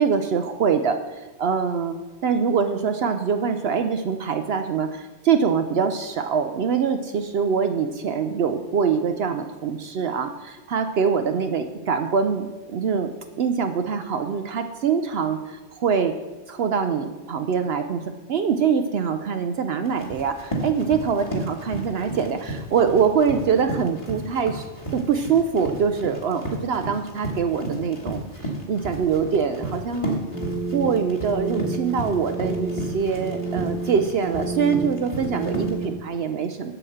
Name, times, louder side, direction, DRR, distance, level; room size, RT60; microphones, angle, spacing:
voice 1, 0.0-2.0 2.2-13.1 13.4-16.1 16.5-18.0 18.3-24.7 24.9-30.2 30.7-36.7, right 6 dB, 65° right, 7 dB, 0.8 m, -24 dB
Run, 19.8-35.9, right 1 dB, 25° left, 1.8 m, -33 dB
sound 1, 30.3-36.0, right 3 dB, 5° right, 0.6 m, -31 dB
7.8 x 6.0 x 7.8 m, 1.2 s
omnidirectional pair, 1.2 m